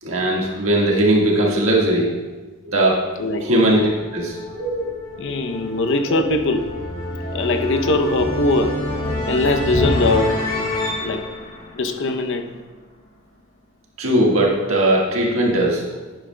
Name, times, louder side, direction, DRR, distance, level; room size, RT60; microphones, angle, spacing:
voice 1, 0.0-2.1 2.6-3.0 3.4-4.9 6.1-6.3 7.3-7.5 14.0-15.8, right 1 dB, 70° right, 1.6 m, -19 dB
voice 2, 3.2-3.5 5.2-6.7 7.3-8.9 9.3-10.4 11.0-11.3 11.7-12.5, left 2 dB, 60° left, 0.7 m, -21 dB
sound 1, 3.6-12.6, left 1 dB, 45° left, 1.9 m, -27 dB
11.0 x 10.0 x 2.2 m
head